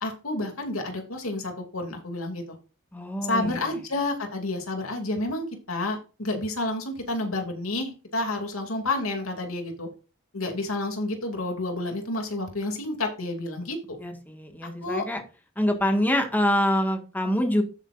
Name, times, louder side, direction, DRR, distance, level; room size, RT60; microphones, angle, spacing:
voice 1, 0.0-2.6 3.2-9.9 10.3-14.0 14.8-15.1, left 2 dB, 90° left, 4 dB, 2.7 m, -30 dB
voice 2, 2.9-3.6 14.0-15.2 15.6-17.6, equal, 10° left, 4 dB, 1.8 m, -25 dB
13.0 x 7.3 x 2.6 m, 0.33 s
head